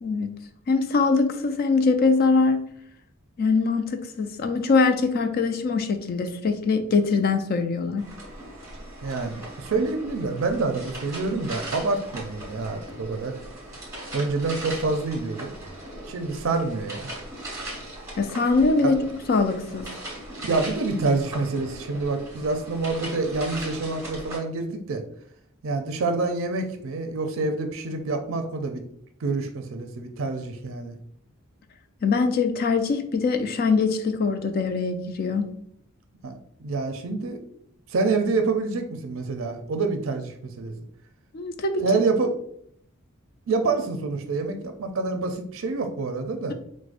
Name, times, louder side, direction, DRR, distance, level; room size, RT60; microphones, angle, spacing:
voice 1, 0.7-2.6 3.4-8.0 18.2-19.0 19.3-19.9 32.0-35.4 41.3-42.0, left 4 dB, 45° left, 7 dB, 0.3 m, -22 dB
sound 1, 8.0-24.4, right 1 dB, 15° right, 1.2 m, -39 dB
voice 2, 9.0-13.3 14.1-15.5 16.1-17.0 18.8-18.9 20.4-25.0 25.6-28.8 29.2-30.9 36.2-36.3 36.6-37.4 37.9-40.7 41.8-42.3 43.5-46.5, right 3 dB, 65° right, 6 dB, 0.4 m, -27 dB
4.7 x 2.1 x 2.4 m, 0.67 s
head